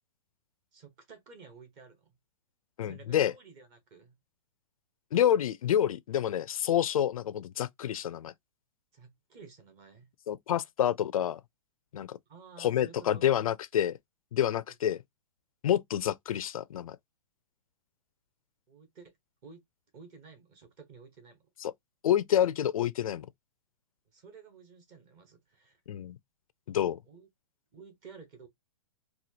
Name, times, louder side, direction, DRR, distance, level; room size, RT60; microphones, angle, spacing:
voice 1, 0.7-2.2 2.8-4.2 8.9-10.1 12.3-13.3 14.7-14.8 18.7-19.1 19.4-19.6 19.9-21.4 24.1-25.8 27.1-27.3 27.7-28.5, right 5 dB, 20° right, 0.9 m, -52 dB
voice 2, 2.8-3.3 5.1-8.3 10.3-11.4 11.9-12.2 12.6-14.0 14.3-15.0 15.6-17.0 21.6-21.7 22.0-23.3 25.9-26.2 26.7-27.0, left 10 dB, 75° left, 0.4 m, -28 dB
4.2 x 2.3 x 2.7 m
hypercardioid pair, 170°, 18 cm